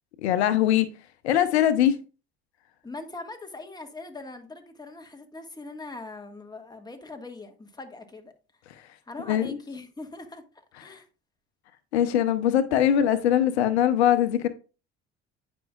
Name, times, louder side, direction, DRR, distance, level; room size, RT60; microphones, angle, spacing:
voice 1, 0.2-0.9 1.2-2.0 9.3-9.6 11.9-14.5, left 10 dB, 85° left, 0.7 m, -21 dB
voice 2, 2.8-8.3 9.1-10.4 10.7-11.1, left 3 dB, 10° left, 1.5 m, -41 dB
9.0 x 5.3 x 2.3 m
hypercardioid pair, 70°, 32 cm